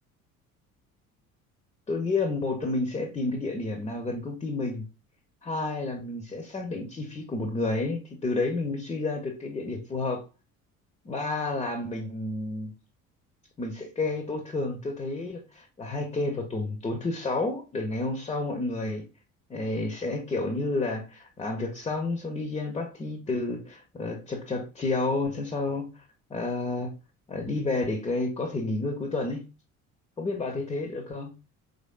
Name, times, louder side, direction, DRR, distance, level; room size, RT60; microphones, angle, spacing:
voice 1, 1.9-4.9 5.4-10.2 11.0-12.7 13.6-19.1 19.5-26.0 26.3-26.9 27.3-29.4 30.2-31.3, left 2 dB, 15° left, 4 dB, 0.4 m, -30 dB
3.8 x 3.1 x 2.2 m, 0.31 s
figure-of-eight pair, 55°, 42 cm